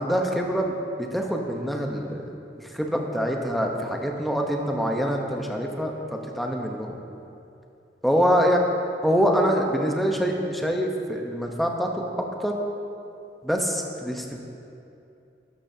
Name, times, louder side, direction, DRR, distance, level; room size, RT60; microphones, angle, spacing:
voice 1, 0.0-2.2 2.6-7.0 8.0-8.6 9.0-12.1 12.4-12.6 13.4-14.4, equal, ahead, 1 dB, 0.8 m, -25 dB
13.0 x 12.0 x 2.8 m, 2.7 s
head